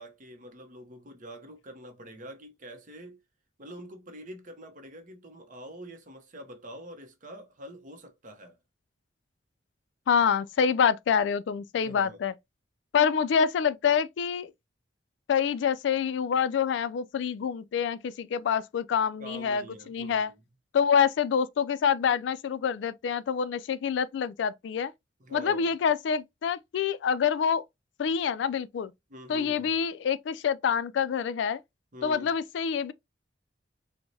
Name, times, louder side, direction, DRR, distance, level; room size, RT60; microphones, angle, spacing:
voice 1, 0.0-3.2 3.6-8.6 11.8-12.2 19.2-20.3 25.2-25.7 29.1-29.7 31.9-32.3, equal, 45° right, 0.9 m, -45 dB
voice 2, 10.1-12.3 12.9-14.5 15.3-20.3 20.7-24.9 25.3-27.6 28.0-28.9 29.3-31.6 32.0-32.9, left 7 dB, 70° left, 0.3 m, -26 dB
4.5 x 2.1 x 2.7 m
head